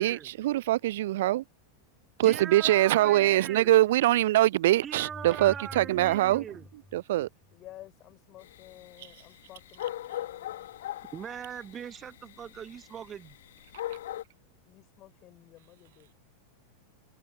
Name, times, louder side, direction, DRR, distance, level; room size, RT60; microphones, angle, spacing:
voice 1, 0.0-1.4 2.2-6.4 6.9-7.3, right 15 dB, 55° right, 0.4 m, -23 dB
voice 2, 2.2-3.7 4.8-6.6 11.1-13.4, right 8 dB, 25° right, 1.3 m, -40 dB
sound 1, 4.9-7.8, left 2 dB, 5° left, 6.5 m, -48 dB
voice 3, 5.7-6.5 7.5-10.7 14.4-16.2, left 15 dB, 35° left, 7.3 m, -53 dB
sound 2, 8.4-14.2, left 13 dB, 60° left, 2.6 m, -41 dB
figure-of-eight pair, 90°, 0 cm